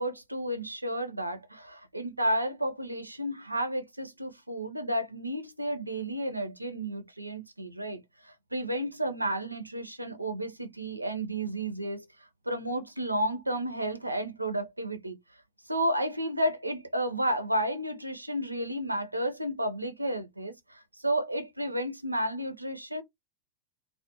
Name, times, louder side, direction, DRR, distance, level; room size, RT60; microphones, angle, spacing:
voice 1, 0.0-12.1 12.5-15.2 15.7-23.0, right 1 dB, 85° right, 0.4 m, -32 dB
2.3 x 2.0 x 2.9 m
figure-of-eight pair, 90°, 0 cm